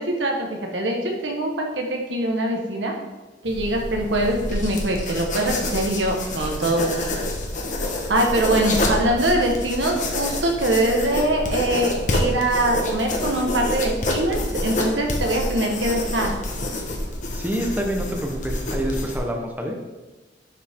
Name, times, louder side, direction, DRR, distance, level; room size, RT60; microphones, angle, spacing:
voice 1, 0.0-2.9 3.4-7.2 8.1-16.3, right 1 dB, 85° right, 1 dB, 1.4 m, -23 dB
sound 1, 3.4-19.2, left 1 dB, 45° left, 1.3 m, -27 dB
voice 2, 17.3-19.8, equal, 10° right, 2 dB, 1.1 m, -27 dB
11.0 x 5.4 x 3.7 m, 1.2 s
head